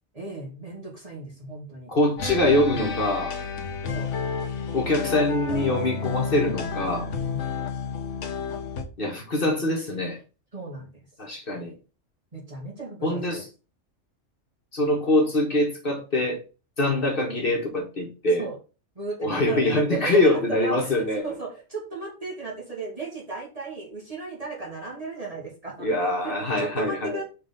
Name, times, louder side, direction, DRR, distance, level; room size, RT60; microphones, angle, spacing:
voice 1, 0.1-1.9 3.9-4.1 7.2-7.5 10.5-11.0 12.3-13.4 16.8-16.9 18.4-18.6 19.0-25.9 26.2-27.2, right 3 dB, 30° right, -2 dB, 2.0 m, -35 dB
voice 2, 1.9-3.3 4.7-7.1 9.0-10.2 11.2-11.7 13.0-13.5 14.7-16.4 16.8-18.5 19.2-21.2 25.8-27.2, left 1 dB, 45° left, 1 dB, 1.6 m, -24 dB
sound 1, 2.2-8.8, left 5 dB, 70° left, 1.3 m, -31 dB
5.4 x 3.8 x 5.4 m, 0.33 s
omnidirectional pair, 1.3 m